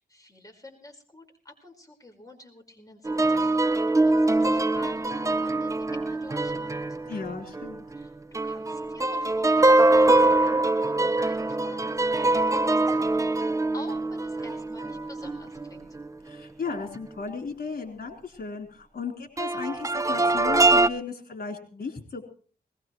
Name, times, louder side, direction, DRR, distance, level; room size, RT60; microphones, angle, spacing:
voice 1, 0.0-7.0 7.9-16.0, left 2 dB, 20° left, 2 dB, 4.8 m, -48 dB
sound 1, 3.1-8.1 8.3-16.1 16.7-16.8 19.4-20.9, right 2 dB, 20° right, 0.7 m, -23 dB
voice 2, 7.1-7.8 16.3-22.2, left 4 dB, 60° left, 2 dB, 4.0 m, -35 dB
20.5 x 19.5 x 3.2 m, 0.42 s
cardioid pair, 65°, 17 cm